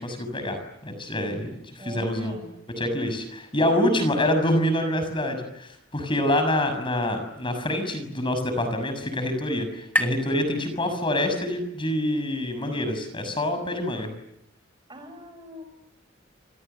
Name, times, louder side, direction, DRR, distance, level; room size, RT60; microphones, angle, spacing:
voice 1, 0.0-1.5 1.7-2.3 2.8-14.1, left 1 dB, 30° left, 8 dB, 6.5 m, -26 dB
voice 2, 1.8-2.5 14.9-15.6, right 1 dB, 25° right, 8 dB, 5.8 m, -41 dB
sound 1, 7.6-11.4, equal, 10° left, 1.5 m, -34 dB
29.5 x 28.0 x 6.9 m, 0.80 s
head